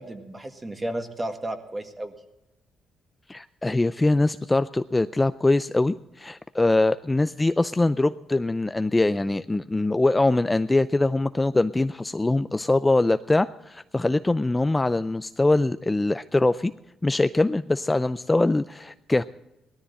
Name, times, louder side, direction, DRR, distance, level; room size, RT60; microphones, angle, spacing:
voice 1, 0.0-2.1, right 1 dB, 20° right, 6 dB, 1.8 m, -33 dB
voice 2, 3.3-16.7 17.0-19.2, left 2 dB, 15° left, 11 dB, 0.4 m, -23 dB
18.0 x 13.5 x 4.2 m, 0.92 s
cardioid pair, 90°, 0 cm